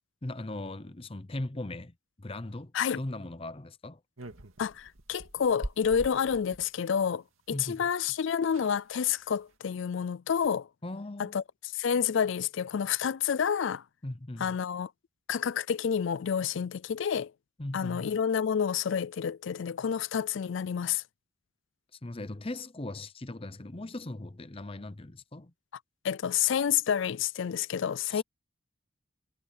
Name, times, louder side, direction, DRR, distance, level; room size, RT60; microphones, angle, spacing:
voice 1, 0.2-4.0 7.5-7.8 10.8-11.4 14.0-14.6 17.6-18.1 22.0-25.5 28.1-28.2, left 2 dB, 25° left, 0.7 m, -39 dB
sound 1, 4.2-6.7 7.9-8.0 8.2-8.3 8.4-8.8 9.3-9.5, right 1 dB, 75° right, 2.2 m, -43 dB
voice 2, 4.6-10.7 11.2-11.4 11.8-13.8 14.4-14.9 15.3-17.3 17.7-21.0 26.0-28.2, left 7 dB, 60° left, 0.4 m, -29 dB
head